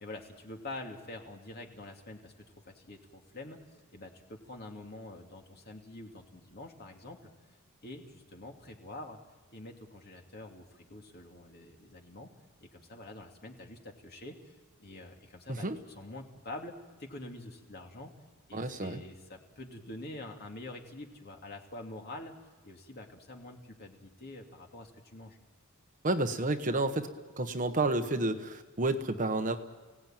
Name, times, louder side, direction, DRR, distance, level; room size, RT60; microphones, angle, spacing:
voice 1, 0.0-2.3 2.7-7.3 7.8-9.2 9.5-12.3 12.6-14.5 14.8-16.7 17.0-18.1 18.5-22.3 22.6-25.4, left 2 dB, 45° left, 2 dB, 2.7 m, -46 dB
voice 2, 18.5-19.0 26.0-27.1 27.4-29.6, right 2 dB, 35° right, 7 dB, 1.2 m, -30 dB
30.0 x 18.0 x 9.1 m, 1.3 s
head